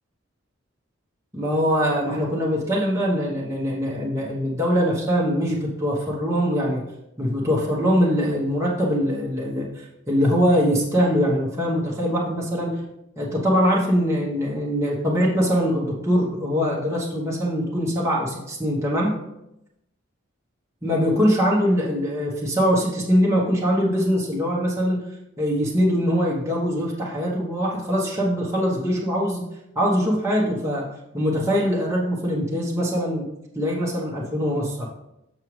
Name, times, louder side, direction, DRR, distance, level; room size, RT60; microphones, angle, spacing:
voice 1, 1.3-6.8 7.2-12.8 13.2-19.2 20.8-25.0 25.4-29.5 29.7-30.8 31.1-33.3 33.5-34.9, equal, 15° right, -5 dB, 1.0 m, -22 dB
6.5 x 6.0 x 3.1 m, 0.84 s
head